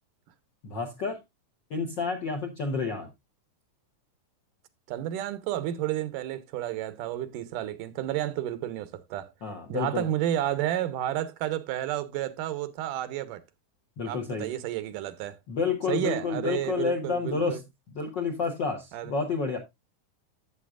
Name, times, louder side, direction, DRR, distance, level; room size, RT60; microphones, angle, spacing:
voice 1, 0.6-1.2 1.7-3.1 9.4-10.1 14.0-14.5 15.5-17.6 17.9-19.6, left 4 dB, 65° left, 1.1 m, -29 dB
voice 2, 4.9-9.3 9.7-13.4 14.1-15.4 15.9-17.6 18.9-19.1, right 12 dB, 85° right, 2.5 m, -31 dB
11.5 x 7.9 x 2.4 m
omnidirectional pair, 3.7 m